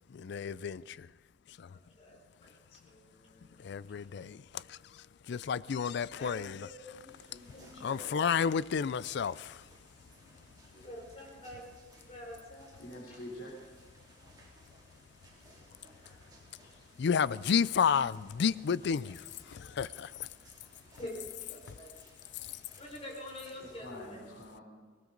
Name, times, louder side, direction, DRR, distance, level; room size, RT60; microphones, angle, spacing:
voice 1, 0.1-1.1 1.6-1.7 3.6-6.6 7.8-9.6 17.0-20.1, left 6 dB, 65° left, 0.4 m, -31 dB
voice 2, 1.7-4.3 6.2-8.4 10.7-13.2 15.6-16.2 20.8-22.0 22.8-24.2, left 1 dB, 35° left, 4.8 m, -48 dB
voice 3, 4.3-5.1 12.8-13.5 23.8-24.6, left 1 dB, 80° left, 3.7 m, -47 dB
sound 1, 7.1-23.8, right 1 dB, 25° right, 3.9 m, -61 dB
19.0 x 18.5 x 3.9 m
head